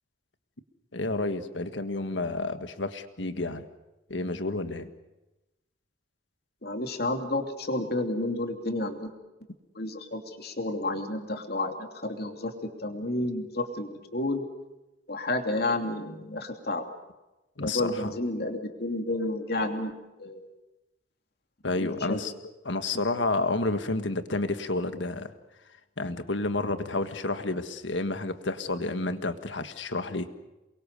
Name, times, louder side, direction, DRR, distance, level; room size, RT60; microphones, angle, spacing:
voice 1, 0.9-3.6 4.1-4.9 17.6-18.1 21.6-22.3 22.6-25.3 26.0-30.3, left 2 dB, 85° left, 9 dB, 1.6 m, -30 dB
voice 2, 6.6-9.1 9.7-14.4 15.1-16.8 17.6-19.9 20.2-20.5 21.7-22.2, left 2 dB, 55° left, 4 dB, 2.9 m, -31 dB
28.5 x 23.0 x 6.8 m, 1.0 s
head